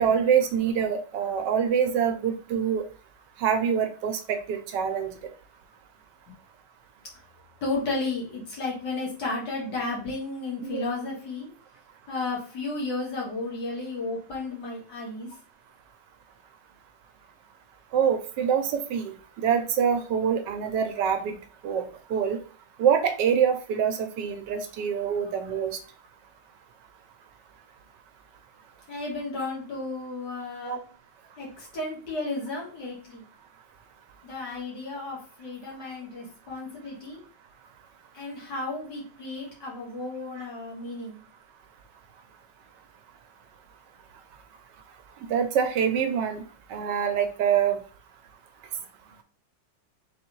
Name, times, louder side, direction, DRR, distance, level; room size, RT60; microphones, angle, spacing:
voice 1, 0.0-2.8 3.4-5.1 10.6-10.8 17.9-21.4 21.6-21.8 22.1-22.4 22.8-25.8 30.6-30.8 40.4-40.5 45.3-46.4 46.7-47.8, right 7 dB, 75° right, 7 dB, 1.2 m, -25 dB
voice 2, 7.6-11.5 12.1-15.3 28.9-30.8 31.4-33.3 34.2-37.2 38.1-41.2, left 3 dB, 65° left, -3 dB, 2.2 m, -33 dB
4.0 x 3.5 x 3.0 m, 0.39 s
omnidirectional pair, 2.0 m